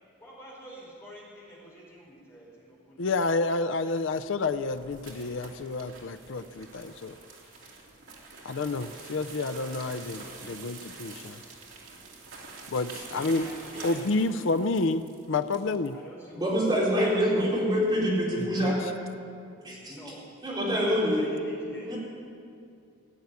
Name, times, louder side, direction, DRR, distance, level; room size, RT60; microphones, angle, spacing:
voice 1, 0.2-3.1 13.1-14.8 15.9-16.4 19.8-20.2 20.9-21.1 21.4-21.9, equal, 15° left, -6 dB, 4.7 m, -48 dB
voice 2, 3.0-7.1 8.4-11.4 12.7-13.5 13.8-16.0 18.4-18.7, left 3 dB, 70° left, 11 dB, 0.5 m, -29 dB
sound 1, 4.2-15.9, right 4 dB, 75° right, 2.7 m, -46 dB
voice 3, 16.3-18.8 19.6-19.9 20.4-21.3 21.8-22.0, equal, 20° right, -7 dB, 4.2 m, -25 dB
16.5 x 8.3 x 9.4 m, 2.5 s
head